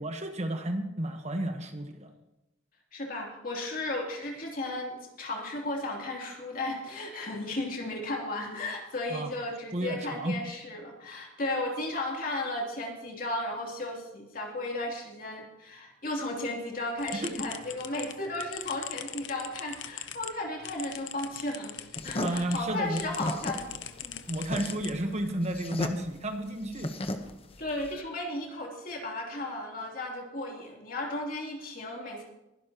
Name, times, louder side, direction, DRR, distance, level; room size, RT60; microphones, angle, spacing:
voice 1, 0.0-2.1 9.1-9.3 9.7-10.4 17.2-17.4 22.2-23.1 24.3-26.9, right 1 dB, 35° right, 6 dB, 1.2 m, -32 dB
voice 2, 2.9-24.3 27.6-32.2, left 2 dB, 45° left, 0 dB, 3.0 m, -35 dB
sound 1, 17.0-22.6 22.9-25.3, left 10 dB, 70° left, 0.8 m, -42 dB
sound 2, 22.0-28.0, left 1 dB, 30° left, 1.0 m, -35 dB
22.0 x 12.0 x 3.0 m, 0.92 s
head